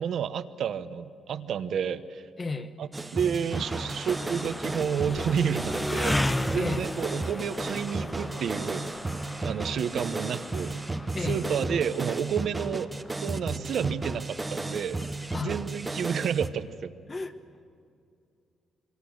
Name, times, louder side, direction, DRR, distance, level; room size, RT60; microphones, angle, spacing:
voice 1, 0.0-2.2 2.8-8.8 9.4-10.8 11.2-12.9 13.2-15.0 15.4-16.9, right 8 dB, 60° right, 11 dB, 1.0 m, -30 dB
voice 2, 2.4-2.8 6.6-6.8 11.1-11.5 15.3-15.5 17.1-17.3, left 3 dB, 25° left, 8 dB, 1.3 m, -32 dB
sound 1, 2.9-16.5, right 2 dB, 15° right, 0.9 m, -34 dB
sound 2, 3.5-15.5, left 1 dB, 10° left, 0.8 m, -36 dB
26.0 x 24.5 x 6.6 m, 2.4 s
cardioid pair, 140°, 0 cm